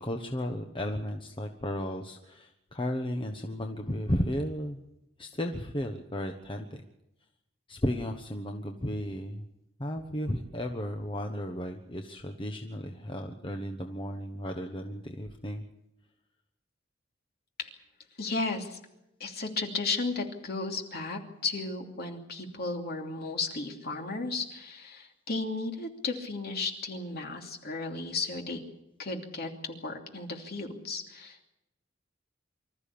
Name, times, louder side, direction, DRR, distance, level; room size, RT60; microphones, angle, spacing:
voice 1, 0.0-4.8 5.2-6.8 7.7-9.5 9.8-15.6, equal, 25° left, 4 dB, 1.2 m, -34 dB
voice 2, 18.2-18.8 19.2-28.6 29.0-31.5, left 3 dB, 50° left, 2 dB, 2.9 m, -34 dB
25.0 x 14.0 x 8.7 m, 0.88 s
head